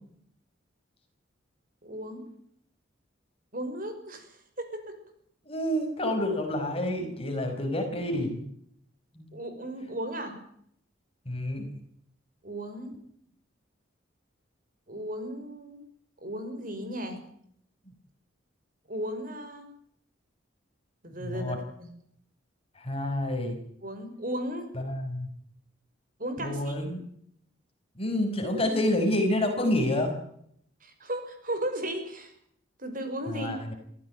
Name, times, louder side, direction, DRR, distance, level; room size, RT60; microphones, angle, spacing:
voice 1, 1.8-2.3 3.5-4.2 4.6-5.0 9.3-10.4 12.4-13.0 14.9-15.8 16.2-17.2 18.9-19.7 21.0-21.9 23.8-24.7 26.2-26.9 30.8-32.3 32.8-33.6, right 1 dB, 45° right, 7 dB, 5.7 m, -35 dB
voice 2, 5.5-8.4 9.1-9.3 11.3-11.7 21.1-21.6 22.8-23.5 24.7-25.3 26.4-27.0 28.0-30.1 33.3-33.7, left 1 dB, 30° left, 4 dB, 5.9 m, -28 dB
24.5 x 15.5 x 9.1 m, 0.68 s
head